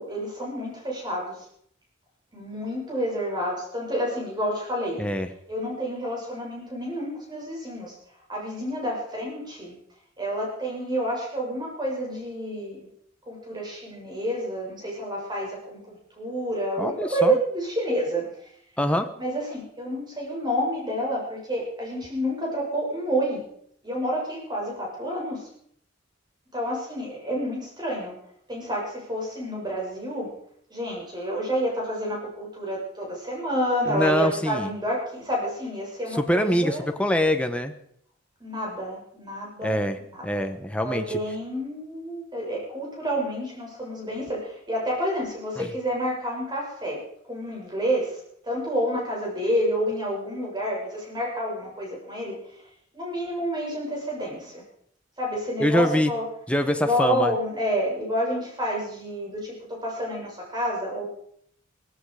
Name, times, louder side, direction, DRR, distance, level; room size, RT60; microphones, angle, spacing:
voice 1, 0.0-1.4 2.3-5.0 5.5-8.0 8.3-9.7 10.2-12.8 13.3-18.3 19.2-23.4 23.8-25.5 26.5-28.2 28.5-30.3 30.7-36.8 38.4-39.8 40.1-40.4 40.8-47.0 47.3-52.4 52.9-54.6 55.2-56.2 56.8-61.1, equal, 20° right, -3 dB, 7.2 m, -29 dB
voice 2, 16.8-17.4 18.8-19.1 33.9-34.7 36.1-37.7 39.6-40.0 40.2-41.2 45.6-45.7 55.6-56.1 56.5-57.4, equal, 5° left, 6 dB, 1.3 m, -24 dB
17.0 x 16.0 x 5.1 m, 0.67 s
head